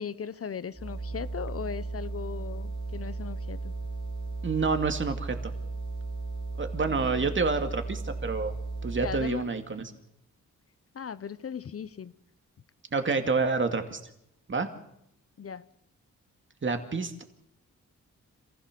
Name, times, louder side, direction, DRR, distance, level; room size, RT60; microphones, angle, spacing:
voice 1, 0.0-3.7 6.9-7.3 9.0-9.5 10.9-12.1 15.4-15.6, left 7 dB, 45° left, 0.9 m, -38 dB
sound 1, 0.7-9.4, right 3 dB, 15° left, 2.9 m, -35 dB
voice 2, 4.4-5.5 6.6-8.5 8.8-9.9 12.9-14.0 14.5-14.7 16.6-17.2, right 4 dB, 40° right, 2.5 m, -28 dB
27.0 x 16.0 x 6.9 m
cardioid pair, 95°, 32 cm